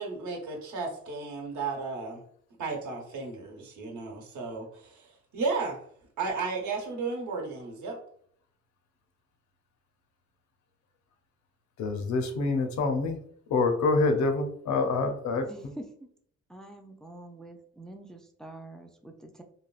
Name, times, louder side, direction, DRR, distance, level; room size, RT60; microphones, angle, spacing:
voice 1, 0.0-2.2 2.6-5.8 6.2-8.0, right 4 dB, 70° right, 1 dB, 1.0 m, -34 dB
voice 2, 11.8-13.2 13.5-15.5, left 3 dB, 70° left, 5 dB, 0.6 m, -26 dB
voice 3, 15.4-16.1 16.5-19.4, right 1 dB, ahead, 3 dB, 0.3 m, -46 dB
3.2 x 2.3 x 2.3 m, 0.63 s
cardioid pair, 90°, 30 cm